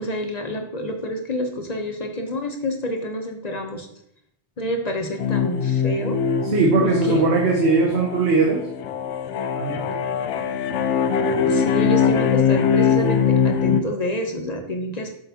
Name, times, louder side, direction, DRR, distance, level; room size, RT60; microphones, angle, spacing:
voice 1, 0.0-3.9 4.6-6.2 6.8-7.3 11.4-15.1, left 1 dB, 40° left, 5 dB, 0.8 m, -28 dB
sound 1, 5.2-13.8, left 7 dB, 80° left, 0.9 m, -22 dB
voice 2, 6.5-8.6 9.5-10.0, right 3 dB, 65° right, 0 dB, 1.2 m, -19 dB
7.9 x 6.7 x 2.8 m, 0.73 s
omnidirectional pair, 1.2 m